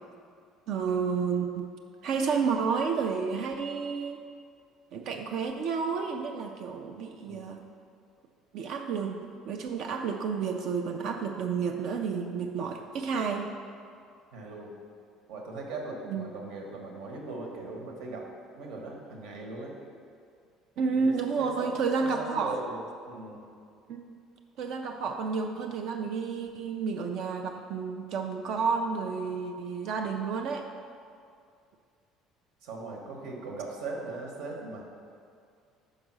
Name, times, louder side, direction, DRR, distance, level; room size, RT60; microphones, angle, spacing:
voice 1, 0.7-1.7 2.0-4.2 4.9-7.6 8.5-13.5 16.1-16.3 20.8-22.6 23.9-24.2 24.6-30.7, right 5 dB, 55° right, 4 dB, 0.4 m, -31 dB
voice 2, 7.2-7.6 14.3-14.7 15.3-18.3 18.5-19.8 20.9-21.1 21.4-22.8 23.0-23.4 32.6-34.8, right 3 dB, 80° right, 0 dB, 1.3 m, -39 dB
5.5 x 4.9 x 6.1 m, 2.3 s
cardioid pair, 160°, 0 cm